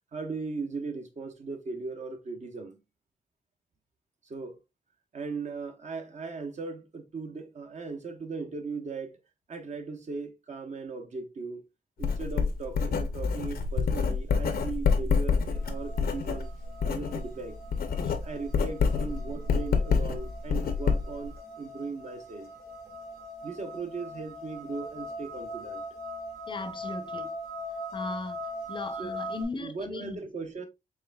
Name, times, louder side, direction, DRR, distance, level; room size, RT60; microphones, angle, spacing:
voice 1, 0.1-2.8 4.2-4.6 5.1-9.2 9.5-11.6 12.0-16.5 16.8-17.6 18.2-22.5 23.4-25.8 29.0-29.2 29.6-30.7, right 4 dB, 50° right, 0.9 m, -38 dB
Writing, 12.0-17.3 17.6-21.3, left 5 dB, 85° left, 0.7 m, -27 dB
sound 1, 15.5-29.4, equal, 85° right, 2.0 m, -41 dB
voice 2, 26.5-27.3 27.9-30.3, left 3 dB, 30° left, 0.6 m, -38 dB
4.8 x 3.4 x 2.3 m
wide cardioid pair, 120°, 15 cm